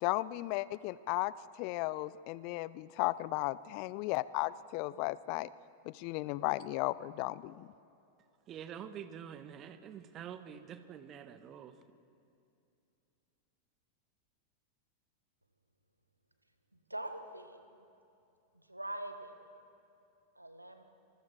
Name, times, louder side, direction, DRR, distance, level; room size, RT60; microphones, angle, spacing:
voice 1, 0.0-5.5 5.9-7.7, left 19 dB, 45° left, 19 dB, 0.4 m, -35 dB
voice 2, 8.5-11.7, right 9 dB, 30° right, 11 dB, 1.3 m, -46 dB
voice 3, 16.9-17.7 18.7-19.3 20.4-20.8, right 1 dB, 85° right, 7 dB, 1.7 m, -43 dB
26.5 x 22.0 x 4.7 m, 2.7 s
figure-of-eight pair, 90°, 0 cm